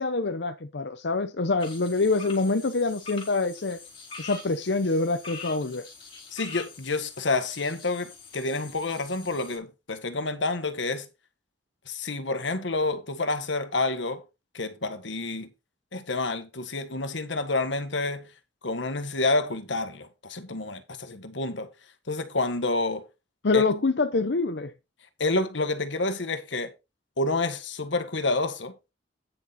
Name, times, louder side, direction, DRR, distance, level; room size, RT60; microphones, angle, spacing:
voice 1, 0.0-3.8 4.2-5.8 23.4-24.7, left 3 dB, 65° left, 0.8 m, -25 dB
sound 1, 1.6-9.6, left 5 dB, 30° left, 3.4 m, -44 dB
voice 2, 6.3-11.1 11.9-14.2 14.5-15.5 15.9-18.3 18.6-21.7 22.1-23.1 23.5-23.6 25.2-26.7 27.2-28.7, left 2 dB, 85° left, 1.6 m, -29 dB
9.8 x 6.7 x 4.2 m
head